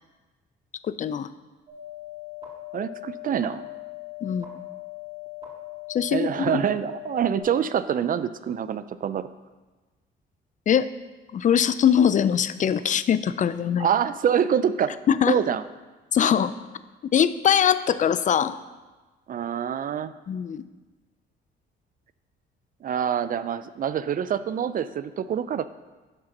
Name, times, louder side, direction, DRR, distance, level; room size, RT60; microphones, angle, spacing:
voice 1, 1.0-1.3 4.2-4.5 5.9-6.6 10.7-10.9 11.3-13.9 15.1-15.4 16.1-16.5 17.1-18.5 20.3-20.6, left 8 dB, 40° left, 14 dB, 0.4 m, -22 dB
sound 1, 1.7-7.4, left 15 dB, 30° right, 2.2 m, -40 dB
voice 2, 2.7-3.6 6.1-9.3 13.8-14.9 15.3-15.6 19.3-20.1 22.8-25.8, right 8 dB, 45° right, 14 dB, 0.4 m, -26 dB
9.9 x 3.8 x 5.9 m, 1.2 s
cardioid pair, 90°, 20 cm